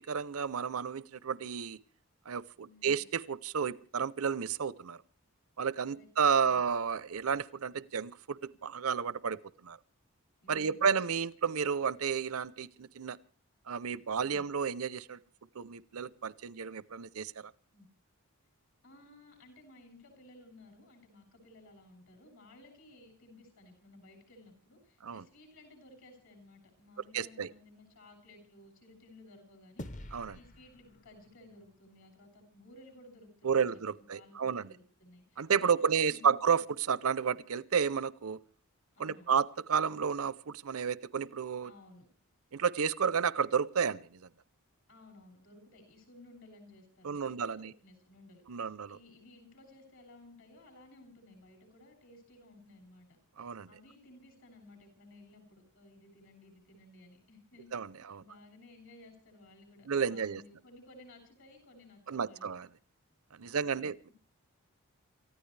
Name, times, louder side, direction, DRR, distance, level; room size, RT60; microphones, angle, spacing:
voice 1, 0.1-1.8 2.3-5.0 5.6-9.8 10.5-13.2 13.7-15.2 15.5-17.5 25.0-25.2 27.1-27.5 30.1-30.4 33.4-34.7 35.4-38.4 39.0-41.7 42.5-44.3 47.0-47.7 48.5-49.0 53.4-53.7 57.7-58.2 59.9-60.4 62.1-62.7 63.3-64.1, right 6 dB, 75° right, 0.7 m, -32 dB
voice 2, 2.6-3.0 5.9-6.1 10.4-11.0 17.7-17.9 18.8-29.9 30.3-33.7 34.1-36.6 38.9-39.4 41.6-42.1 44.9-53.2 53.7-57.7 58.0-62.5 63.4-64.1, left 2 dB, 65° left, 7.3 m, -57 dB
sound 1, 29.8-32.4, left 1 dB, 35° left, 0.8 m, -48 dB
28.5 x 14.5 x 3.3 m
head